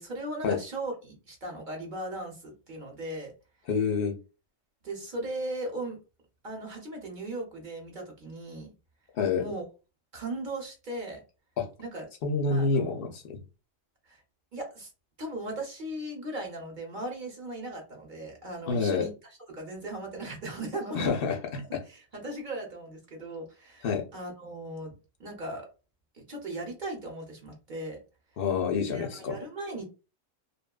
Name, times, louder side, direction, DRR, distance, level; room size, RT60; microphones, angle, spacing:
voice 1, 0.0-3.3 4.8-6.0 6.4-8.7 9.4-9.6 10.1-11.2 11.8-12.0 12.5-13.1 14.1-14.2 14.5-14.9 15.2-21.1 21.8-24.9 25.2-25.6 26.1-28.0 28.9-29.8, right 1 dB, 45° right, 0 dB, 0.7 m, -38 dB
voice 2, 3.7-4.2 9.2-9.4 11.6-11.7 12.2-13.4 18.7-19.1 20.9-21.6 23.8-24.0 28.4-29.4, left 5 dB, 65° left, 4 dB, 0.6 m, -27 dB
2.6 x 2.3 x 2.2 m, 0.32 s
omnidirectional pair, 1.4 m